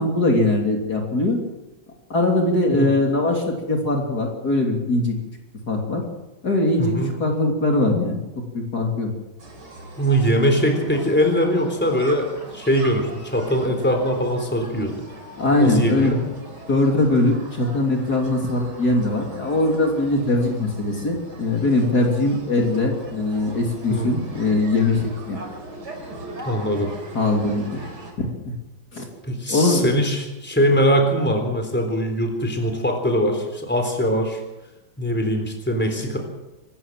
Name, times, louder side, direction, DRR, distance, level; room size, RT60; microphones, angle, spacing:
voice 1, 0.0-1.4 2.1-5.2 5.7-6.0 6.4-6.9 7.2-8.2 8.5-9.1 15.4-16.2 16.7-25.4 27.1-27.8 28.2-28.5 28.9-29.1 29.5-30.1, left 2 dB, 50° left, 1 dB, 3.5 m, -21 dB
voice 2, 6.8-7.1 10.0-15.0 15.6-16.2 23.9-24.2 26.4-26.9 29.2-34.4 35.0-36.2, equal, 5° left, 4 dB, 3.7 m, -22 dB
sound 1, 9.4-28.1, right 2 dB, 55° right, 4.7 m, -40 dB
24.5 x 14.0 x 7.5 m, 1.0 s
omnidirectional pair, 2.2 m